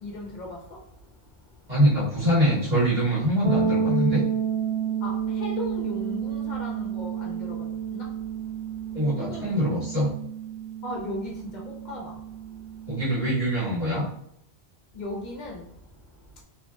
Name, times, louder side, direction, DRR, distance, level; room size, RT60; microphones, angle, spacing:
voice 1, 0.0-0.5 5.0-5.1 5.4-7.6 7.9-8.0 9.3-9.6 10.8-11.3 11.9-12.1 14.9-15.6, left 1 dB, 50° left, -2 dB, 0.7 m, -36 dB
voice 2, 1.7-4.2 8.9-10.1 12.9-14.1, equal, 45° right, -12 dB, 1.6 m, -23 dB
sound 1, 3.4-13.1, right 7 dB, 70° right, 0.8 m, -30 dB
2.7 x 2.7 x 2.2 m, 0.75 s
omnidirectional pair, 1.1 m